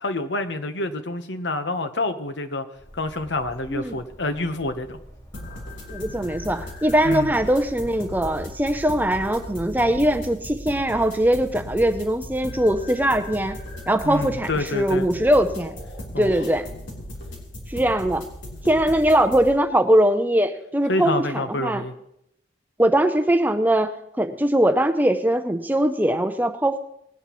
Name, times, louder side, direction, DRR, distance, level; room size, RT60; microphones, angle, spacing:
voice 1, 0.0-2.7 2.9-5.0 7.0-7.3 14.0-15.1 16.1-16.3 20.9-21.9, left 2 dB, 70° left, 9 dB, 1.1 m, -27 dB
Bird, 2.7-10.4, equal, 20° left, 1.9 m, -46 dB
sound 1, 5.3-19.5, left 1 dB, 85° left, 3.5 m, -37 dB
voice 2, 5.9-13.6 13.9-15.8 16.2-16.7 17.7-18.3 18.6-21.8 22.8-23.9 24.2-26.8, right 1 dB, 10° right, 8 dB, 0.6 m, -21 dB
20.0 x 10.5 x 3.1 m, 0.77 s
head